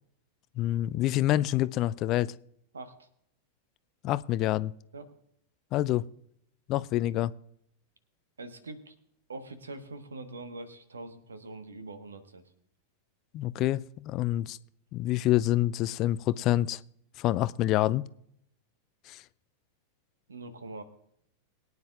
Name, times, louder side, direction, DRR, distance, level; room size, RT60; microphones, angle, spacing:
voice 1, 0.6-2.3 4.0-4.7 5.7-6.0 6.7-7.3 13.3-14.6 14.9-16.8 17.2-18.1 19.1-19.2, left 14 dB, 35° left, 0.4 m, -27 dB
voice 2, 2.7-3.1 4.9-5.1 8.4-9.0 9.3-12.4 20.3-20.8, right 2 dB, 75° right, 1.3 m, -43 dB
22.5 x 9.6 x 2.4 m
figure-of-eight pair, 90°, 0 cm